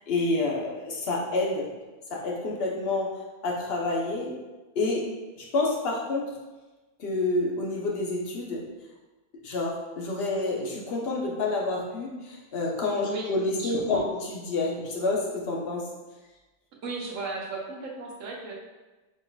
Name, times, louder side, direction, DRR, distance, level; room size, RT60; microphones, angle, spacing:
voice 1, 0.1-1.7 2.1-3.2 3.4-4.4 4.7-5.1 5.5-6.3 7.0-8.7 9.4-14.0 14.3-15.9, left 2 dB, 50° left, -2 dB, 0.8 m, -28 dB
voice 2, 13.6-14.1 16.8-18.5, right 3 dB, 55° right, -2 dB, 1.0 m, -35 dB
5.3 x 3.7 x 2.3 m, 1.2 s
omnidirectional pair, 1.7 m